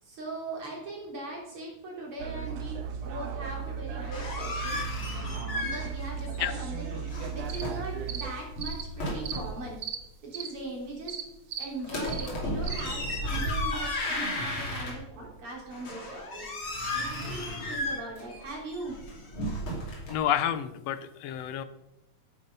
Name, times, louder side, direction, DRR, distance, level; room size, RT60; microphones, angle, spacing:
voice 1, 0.0-4.8 5.6-9.8 10.2-11.2 11.6-16.4 16.9-19.0, right 2 dB, 45° right, -2 dB, 4.4 m, -40 dB
sound 1, 2.2-8.3, right 6 dB, 85° right, 2.6 m, -36 dB
sound 2, 3.8-6.1 6.3-7.9 8.4-9.6 11.8-15.3 15.7-20.1, left 1 dB, 45° left, 3.6 m, -34 dB
sound 3, 7.5-7.6 8.1-8.2 8.6-8.8 9.2-9.4 9.8-10.0 10.3-10.5 11.1-11.2 11.5-11.7 12.1-12.3 12.6-12.8, right 9 dB, 70° right, 2.1 m, -36 dB
voice 2, 20.1-21.6, left 10 dB, 75° left, 12 dB, 1.6 m, -30 dB
11.0 x 9.3 x 5.4 m, 0.88 s
omnidirectional pair, 3.4 m